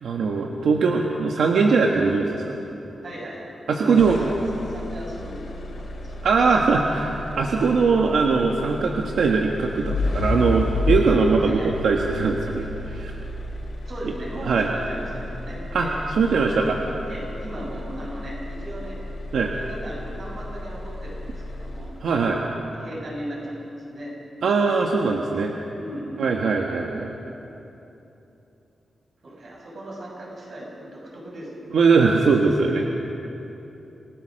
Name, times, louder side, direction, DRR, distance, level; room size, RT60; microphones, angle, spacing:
voice 1, 0.0-2.6 3.7-4.2 6.2-13.1 14.5-14.7 15.7-15.9 16.1-16.8 19.3-19.5 22.0-22.4 24.4-25.5 26.2-27.2 31.7-32.8, right 4 dB, 80° right, 0 dB, 1.5 m, -21 dB
voice 2, 3.0-3.5 3.7-4.4 4.6-6.2 11.4-11.7 13.9-15.9 16.3-16.7 17.1-19.0 19.5-24.2 25.8-26.4 29.2-31.8 32.4-32.5, right 1 dB, 45° right, -3 dB, 7.1 m, -37 dB
sound 1, 4.0-22.2, left 2 dB, 65° left, 4.0 m, -32 dB
28.0 x 18.5 x 6.6 m, 3.0 s
wide cardioid pair, 175°, 0 cm